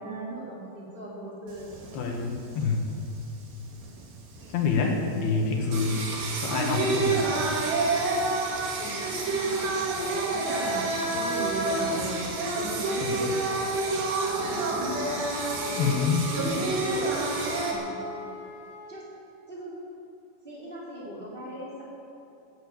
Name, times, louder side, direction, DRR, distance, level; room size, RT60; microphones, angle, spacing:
voice 1, 0.0-1.7 8.8-12.3 12.5-13.9 14.2-15.2 15.6-17.1 17.6-18.0 18.9-19.1 19.5-19.7 20.4-21.8, right 1 dB, 10° right, -6 dB, 4.1 m, -38 dB
Singing, 1.5-17.7, right 3 dB, 75° right, 4.3 m, -29 dB
voice 2, 1.9-2.9 4.5-6.0 6.4-7.3 13.0-13.3 15.8-16.2, left 4 dB, 65° left, 1 dB, 3.3 m, -27 dB
Wind instrument woodwind instrument, 14.1-18.9, left 5 dB, 85° left, 1.2 m, -41 dB
15.0 x 10.5 x 8.6 m, 2.6 s
omnidirectional pair, 5.0 m